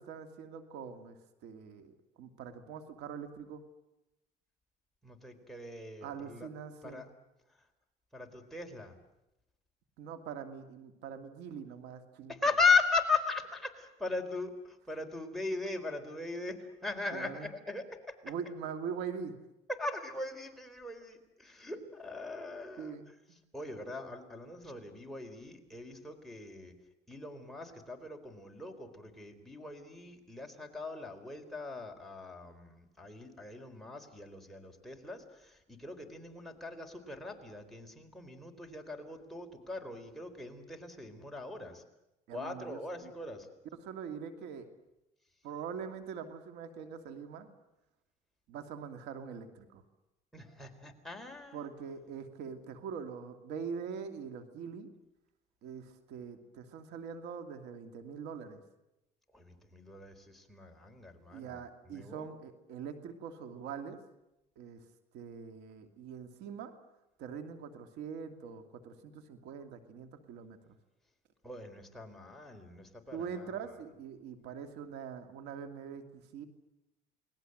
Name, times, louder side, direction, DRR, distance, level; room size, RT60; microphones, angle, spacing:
voice 1, 0.0-3.6 6.0-7.0 10.0-12.3 17.1-17.5 18.2-19.4 22.8-23.4 42.3-43.1 43.8-44.7 45.4-47.5 48.5-49.8 51.5-54.9 55.6-58.6 61.3-64.0 64.6-64.8 65.1-66.7 67.2-70.7 73.1-76.5, right 6 dB, 90° right, 8 dB, 2.6 m, -43 dB
voice 2, 5.0-6.5 6.8-7.1 8.1-8.9 12.3-18.3 19.7-23.0 23.5-26.7 27.1-41.8 42.3-43.5 50.3-51.6 59.3-61.6 61.9-62.3 71.4-73.7, left 4 dB, ahead, 1 dB, 4.1 m, -38 dB
30.0 x 20.0 x 7.9 m, 0.91 s
cardioid pair, 110°, 17 cm